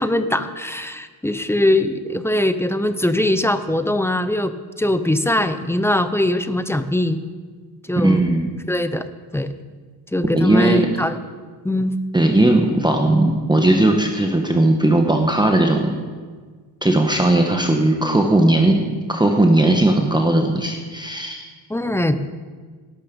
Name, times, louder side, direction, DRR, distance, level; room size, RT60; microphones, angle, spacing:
voice 1, 0.0-7.2 7.8-8.2 8.7-9.0 9.3-9.5 10.1-11.2 11.6-11.9 21.7-22.2, left 1 dB, 5° left, 11 dB, 0.6 m, -21 dB
voice 2, 8.0-8.6 10.3-10.9 12.1-15.9 16.8-21.5, right 1 dB, 10° right, 3 dB, 1.1 m, -17 dB
18.0 x 12.0 x 5.3 m, 1.5 s
cardioid pair, 140°, 45 cm